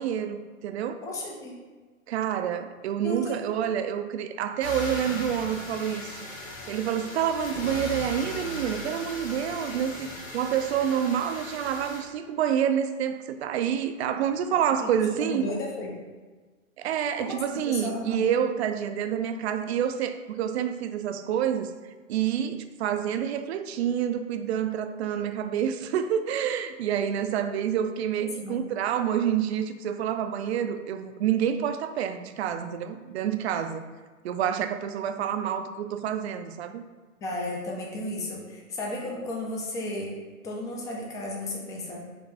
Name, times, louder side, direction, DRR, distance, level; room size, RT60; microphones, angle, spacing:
voice 1, 0.0-1.0 2.1-6.3 6.7-15.5 16.8-21.7 22.1-33.9 34.2-36.8, right 9 dB, 55° right, 9 dB, 0.5 m, -28 dB
voice 2, 1.0-1.6 3.0-3.4 14.8-16.0 17.2-18.2 28.2-28.6 37.2-40.1 40.4-42.0, left 1 dB, 10° left, -1 dB, 0.4 m, -34 dB
sound 1, 4.6-12.0, left 2 dB, 75° left, 1.4 m, -38 dB
5.1 x 3.1 x 3.4 m, 1.4 s
hypercardioid pair, 115°, 41 cm